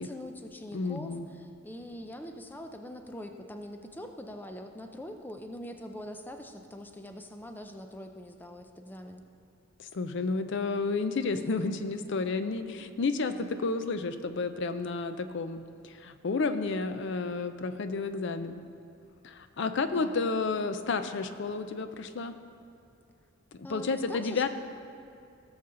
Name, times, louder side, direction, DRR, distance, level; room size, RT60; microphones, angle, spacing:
voice 1, 0.0-9.2 11.4-11.6 19.8-20.3 23.6-24.5, left 1 dB, 10° left, 5 dB, 0.5 m, -43 dB
voice 2, 0.7-1.2 9.8-18.6 19.2-22.3 23.7-24.5, left 4 dB, 60° left, 10 dB, 0.5 m, -31 dB
17.0 x 7.0 x 3.8 m, 2.5 s
head